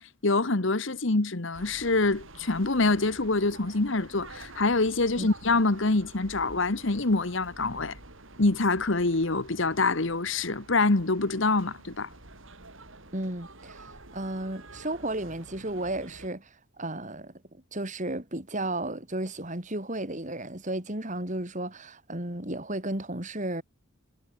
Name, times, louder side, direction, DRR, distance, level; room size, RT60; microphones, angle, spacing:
voice 1, 0.0-8.0 8.4-12.1, left 3 dB, 60° left, 1.3 m, -25 dB
sound 1, 1.5-16.3, right 2 dB, 65° right, 5.1 m, -48 dB
voice 2, 13.1-17.3 17.7-23.6, right 1 dB, 35° right, 3.4 m, -33 dB
head